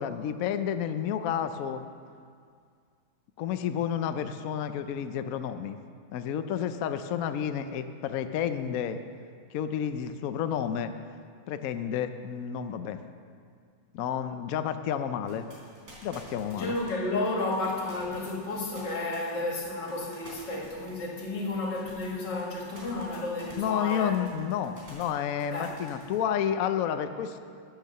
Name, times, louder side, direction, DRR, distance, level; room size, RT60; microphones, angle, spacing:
voice 1, 0.0-1.8 3.4-5.8 6.1-9.0 9.5-10.9 11.5-13.0 13.9-15.5 16.0-16.7 23.6-27.4, left 9 dB, 75° left, 9 dB, 0.7 m, -30 dB
sound 1, 15.3-26.2, right 1 dB, 45° right, 4.2 m, -50 dB
voice 2, 16.5-24.1 25.5-25.7, left 2 dB, 60° left, -2 dB, 2.7 m, -32 dB
13.5 x 8.5 x 6.7 m, 2.2 s
omnidirectional pair, 2.2 m